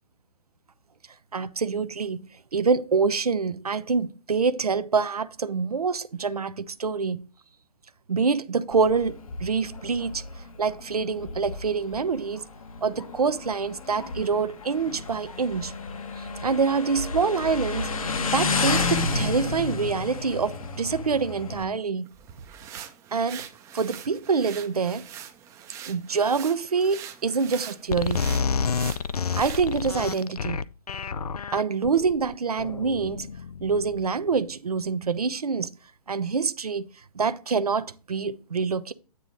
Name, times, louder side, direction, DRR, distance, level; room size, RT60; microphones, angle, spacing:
voice 1, 1.3-2.2 2.5-7.2 8.1-12.4 12.8-15.7 16.2-17.9 18.3-22.1 23.1-23.5 23.7-25.0 25.9-28.2 29.3-30.6 31.5-33.3 33.6-35.7 36.1-36.8 37.1-38.9, right 5 dB, 80° right, 0.6 m, -26 dB
Motorcycle, 8.7-21.6, left 3 dB, 65° left, 1.3 m, -31 dB
sound 1, 22.0-30.3, right 9 dB, 15° right, 0.6 m, -43 dB
sound 2, 27.9-34.3, left 5 dB, 80° left, 0.4 m, -29 dB
9.2 x 3.9 x 4.8 m
figure-of-eight pair, 125°, 19 cm